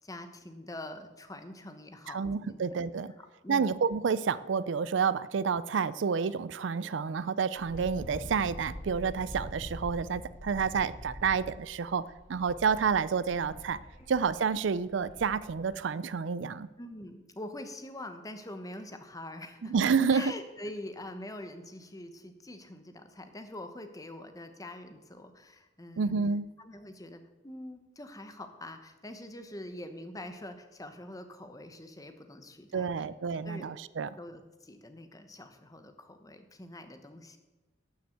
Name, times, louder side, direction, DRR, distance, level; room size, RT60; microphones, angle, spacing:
voice 1, 0.0-2.6 2.9-3.7 16.8-19.7 20.1-26.2 26.6-33.8 34.2-37.4, left 1 dB, 20° left, 8 dB, 1.1 m, -44 dB
voice 2, 2.1-3.1 3.5-13.8 14.1-16.7 19.6-20.3 26.0-26.5 32.7-34.1, right 6 dB, 70° right, 18 dB, 0.4 m, -29 dB
Wind, 7.5-15.7, equal, 40° left, 3.5 m, -45 dB
12.5 x 7.1 x 8.0 m, 1.1 s
head